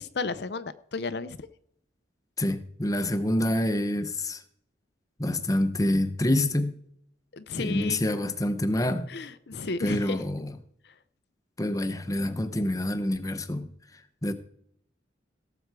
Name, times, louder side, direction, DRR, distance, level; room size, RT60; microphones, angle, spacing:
voice 1, 0.0-1.4 7.3-8.0 9.1-10.2, left 4 dB, 60° left, 0.6 m, -33 dB
voice 2, 2.4-4.4 5.2-6.8 7.6-9.1 9.8-10.6 11.6-14.3, left 1 dB, 20° left, 0.8 m, -27 dB
17.5 x 7.9 x 4.8 m
head